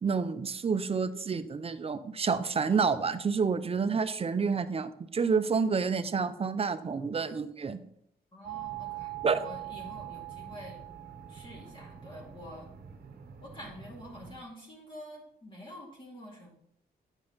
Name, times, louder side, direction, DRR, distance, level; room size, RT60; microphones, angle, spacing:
voice 1, 0.0-7.8 9.2-9.4, right 5 dB, 35° right, 12 dB, 0.6 m, -29 dB
voice 2, 8.3-10.8 11.3-12.7 13.4-16.5, left 1 dB, 30° left, -3 dB, 2.4 m, -47 dB
sound 1, 8.4-14.4, right 12 dB, 60° right, 0.9 m, -43 dB
9.0 x 5.3 x 3.9 m, 0.73 s
cardioid pair, 90°, 17 cm